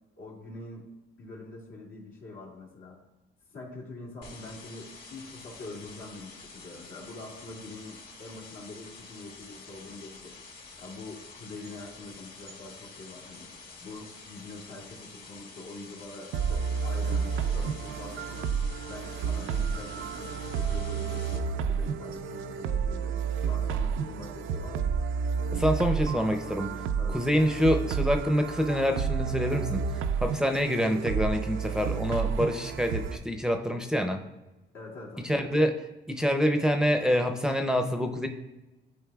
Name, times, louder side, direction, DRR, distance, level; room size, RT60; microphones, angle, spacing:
voice 1, 0.2-0.9 1.2-3.0 3.5-10.4 10.8-13.5 13.8-18.5 18.9-24.9 27.0-27.2 34.7-35.5, left 2 dB, 85° left, -3 dB, 2.0 m, -44 dB
sound 1, 4.2-21.4, left 4 dB, 50° left, 1.6 m, -48 dB
sound 2, 16.3-33.2, right 6 dB, 85° right, 0.4 m, -30 dB
voice 2, 25.5-26.7 27.1-29.8 30.2-34.2 35.2-35.7 36.1-38.3, equal, 5° right, 5 dB, 0.5 m, -26 dB
11.5 x 4.3 x 2.3 m, 1.1 s
cardioid pair, 90°, 20 cm